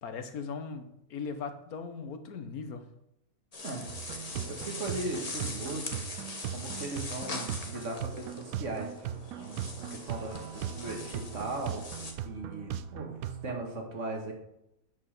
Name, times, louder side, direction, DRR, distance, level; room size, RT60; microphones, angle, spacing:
voice 1, 0.0-2.9, left 5 dB, 85° left, 8 dB, 1.5 m, -39 dB
sound 1, 3.5-12.1, left 3 dB, 30° left, 1.2 m, -42 dB
sound 2, 3.9-13.7, right 10 dB, 85° right, 1.1 m, -39 dB
voice 2, 4.5-6.1 6.5-8.9 9.4-11.9 12.3-13.1 13.4-14.3, right 2 dB, 55° right, 1 dB, 2.1 m, -38 dB
9.3 x 5.5 x 6.5 m, 0.82 s
omnidirectional pair, 1.5 m